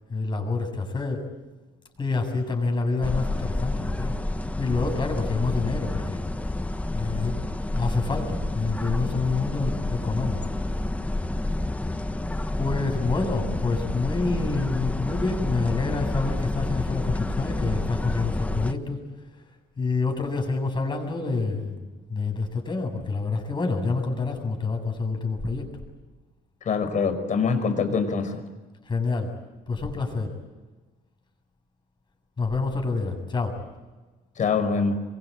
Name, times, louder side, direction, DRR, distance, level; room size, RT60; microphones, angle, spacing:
voice 1, 0.1-1.2 2.0-4.2 4.6-6.2 6.9-7.4 7.7-10.5 12.6-19.0 19.8-21.8 22.1-25.6 28.9-29.3 29.7-30.3 32.4-33.6, left 3 dB, 25° left, 3 dB, 7.7 m, -27 dB
sound 1, 3.0-18.7, left 2 dB, 10° left, 1.2 m, -29 dB
voice 2, 26.7-28.4 34.4-34.9, left 5 dB, 50° left, 8 dB, 5.3 m, -24 dB
27.5 x 24.0 x 8.8 m, 1.2 s
cardioid pair, 110°, 17 cm